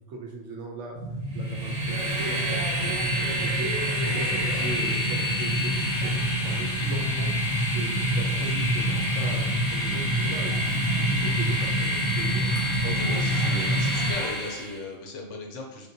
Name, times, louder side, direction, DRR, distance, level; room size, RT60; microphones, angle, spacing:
voice 1, 0.1-1.0 1.3-6.1 6.4-12.5, right 2 dB, 70° right, 0 dB, 0.8 m, -39 dB
sound 1, 0.9-14.1, right 1 dB, 90° right, 1.3 m, -28 dB
Train, 1.3-14.8, left 1 dB, 25° right, 0.7 m, -29 dB
voice 2, 4.0-4.4 12.8-15.9, left 3 dB, 70° left, 1 dB, 0.9 m, -36 dB
3.5 x 2.3 x 2.5 m, 0.97 s
omnidirectional pair, 1.4 m